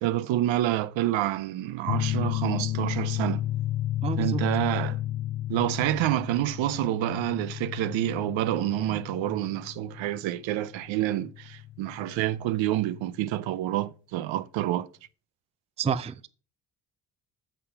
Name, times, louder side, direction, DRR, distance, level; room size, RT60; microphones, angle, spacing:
voice 1, 0.0-3.4 4.2-5.0 5.5-14.9, right 14 dB, 65° right, 0.6 m, -28 dB
sound 1, 1.9-13.1, left 14 dB, 80° left, 0.7 m, -32 dB
voice 2, 4.0-4.4 15.8-16.3, right 6 dB, 15° right, 0.4 m, -29 dB
6.9 x 5.1 x 5.7 m
hypercardioid pair, 45°, 50 cm